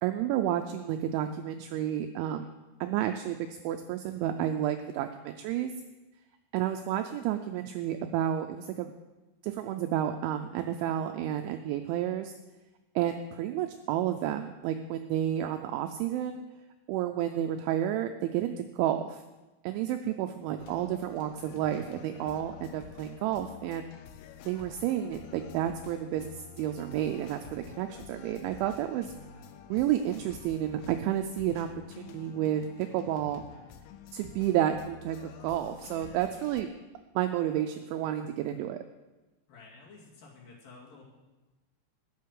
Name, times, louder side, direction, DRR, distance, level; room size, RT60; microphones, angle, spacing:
voice 1, 0.0-2.5 2.8-5.7 6.5-8.9 9.4-12.3 13.0-16.4 16.9-19.2 19.6-23.9 24.5-29.1 29.7-33.4 34.1-36.7 37.2-38.8, right 11 dB, 85° right, 7 dB, 2.6 m, -31 dB
sound 1, 20.6-36.6, left 8 dB, 85° left, 3.3 m, -49 dB
voice 2, 39.5-41.0, left 4 dB, 55° left, -3 dB, 3.4 m, -51 dB
11.5 x 9.7 x 6.5 m, 1.1 s
omnidirectional pair, 5.9 m